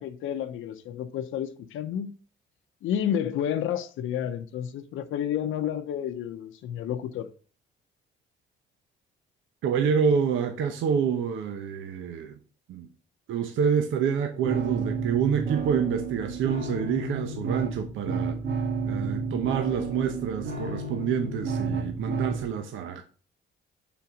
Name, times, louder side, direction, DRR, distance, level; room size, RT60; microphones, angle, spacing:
voice 1, 0.0-2.1 2.8-7.3, left 9 dB, 80° left, 0.7 m, -30 dB
voice 2, 9.6-12.4 12.7-12.9 13.3-18.4 18.9-23.0, right 7 dB, 80° right, 0.8 m, -27 dB
sound 1, 14.4-22.4, right 4 dB, 55° right, 1.6 m, -31 dB
5.7 x 4.3 x 5.1 m
cardioid pair, 90°, 20 cm